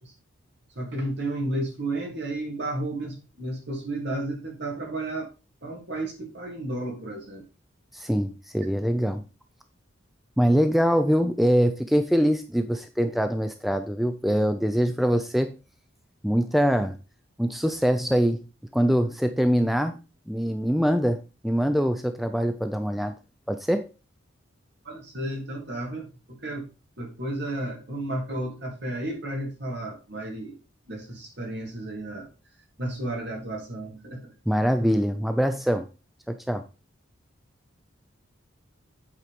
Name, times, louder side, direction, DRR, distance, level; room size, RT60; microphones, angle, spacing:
voice 1, 0.7-5.3 5.6-7.4 24.8-26.7 27.0-30.6 30.9-32.3 32.8-34.3, right 1 dB, 55° right, 1 dB, 2.9 m, -32 dB
voice 2, 7.9-9.2 10.4-15.5 16.2-17.0 17.4-18.4 18.7-20.0 20.3-23.1 23.5-23.9 34.5-35.9 36.3-36.6, equal, ahead, 8 dB, 0.4 m, -23 dB
8.4 x 4.7 x 5.1 m, 0.31 s
head